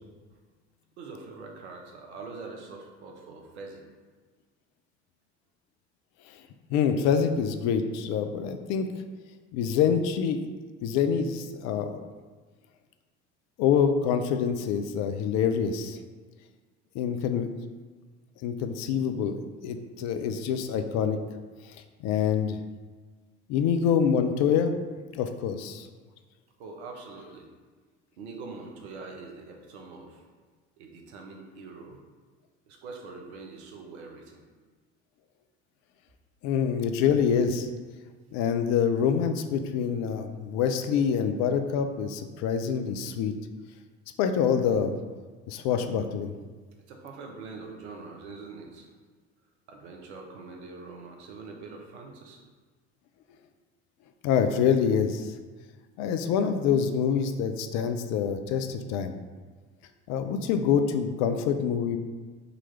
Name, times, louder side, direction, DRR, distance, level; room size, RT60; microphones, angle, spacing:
voice 1, 1.0-3.9 26.6-27.5 28.2-30.2 30.8-32.0 32.7-34.4 46.9-48.9 49.7-52.4, right 4 dB, 70° right, 2 dB, 0.8 m, -43 dB
voice 2, 6.7-8.9 9.5-10.4 10.8-12.0 13.6-16.0 16.9-17.5 18.4-21.2 22.0-22.6 23.5-24.8 25.1-25.9 36.4-37.7 38.3-43.3 44.2-44.9 45.5-46.3 54.2-55.3 56.0-59.1 60.1-62.0, left 7 dB, 50° left, 7 dB, 0.5 m, -26 dB
3.8 x 3.0 x 4.4 m, 1.4 s
figure-of-eight pair, 60°, 35 cm